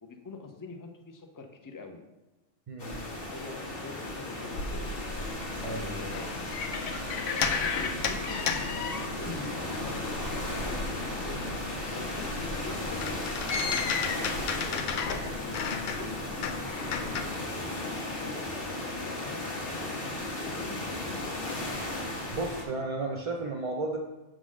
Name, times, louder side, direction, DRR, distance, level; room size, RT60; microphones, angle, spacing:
voice 1, 0.0-2.0 3.1-4.9 5.6-6.4 7.1-11.4 11.9-21.3, left 3 dB, 25° left, 4 dB, 0.5 m, -45 dB
voice 2, 2.7-3.0 5.6-6.0 22.3-24.0, right 2 dB, 40° right, 1 dB, 0.5 m, -33 dB
sound 1, 2.8-22.6, left 2 dB, 50° left, 1.6 m, -35 dB
sound 2, 4.5-9.5 9.8-17.2, left 5 dB, 85° left, 1.0 m, -34 dB
sound 3, 7.3-12.5, right 2 dB, 90° right, 1.0 m, -49 dB
6.3 x 3.9 x 6.2 m, 1.1 s
omnidirectional pair, 1.2 m